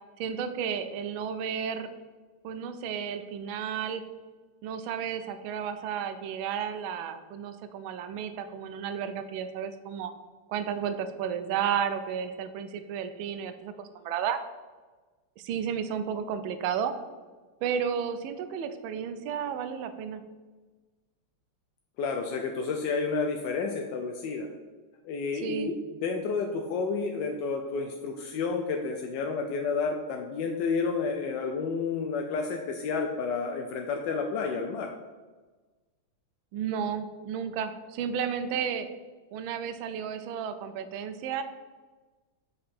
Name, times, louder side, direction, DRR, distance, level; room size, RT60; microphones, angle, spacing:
voice 1, 0.2-1.9 2.4-4.0 4.6-10.1 10.5-14.4 15.4-16.9 17.6-20.2 25.4-25.7 36.5-38.9 39.3-41.4, right 8 dB, 75° right, 10 dB, 1.3 m, -32 dB
voice 2, 22.0-24.5 25.0-34.9, left 4 dB, 75° left, 2 dB, 1.0 m, -30 dB
5.5 x 5.3 x 4.2 m, 1.3 s
omnidirectional pair, 2.4 m